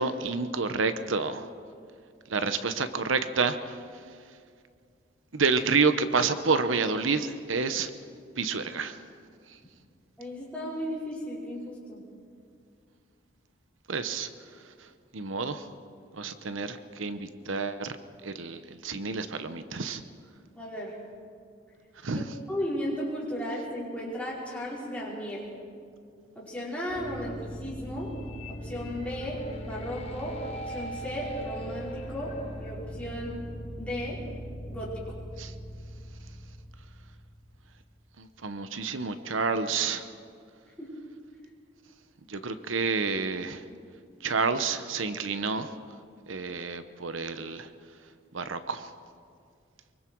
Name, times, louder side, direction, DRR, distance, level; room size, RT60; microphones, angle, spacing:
voice 1, 0.0-1.5 2.3-3.8 5.3-7.9 8.4-9.0 13.9-14.3 15.1-15.7 16.1-18.0 18.2-20.0 22.0-22.4 35.4-35.5 38.2-40.1 42.3-43.6 44.2-45.7 46.3-47.7 48.3-48.9, right 4 dB, 90° right, 10 dB, 1.0 m, -29 dB
voice 2, 10.2-12.0 20.5-21.0 22.1-25.5 26.4-28.2 28.5-33.4 33.8-34.2 34.7-35.0 40.8-40.9 43.7-43.8, equal, 5° left, -7 dB, 5.2 m, -35 dB
sound 1, 26.9-37.8, equal, 30° left, 2.1 m, -40 dB
24.5 x 23.5 x 4.7 m, 2.2 s
head